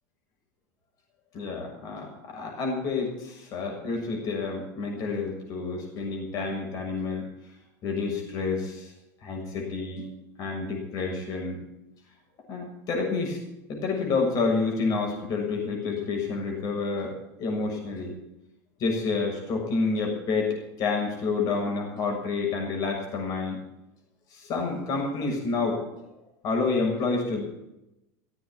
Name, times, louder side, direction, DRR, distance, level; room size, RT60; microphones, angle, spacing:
voice 1, 1.3-7.2 7.8-8.9 9.2-10.0 10.4-11.6 12.5-13.4 13.7-17.1 17.4-18.1 18.8-23.6 24.3-25.8 26.4-27.5, left 4 dB, 50° left, 1 dB, 6.9 m, -29 dB
16.5 x 8.7 x 8.9 m, 0.89 s
supercardioid pair, 105°, 8 cm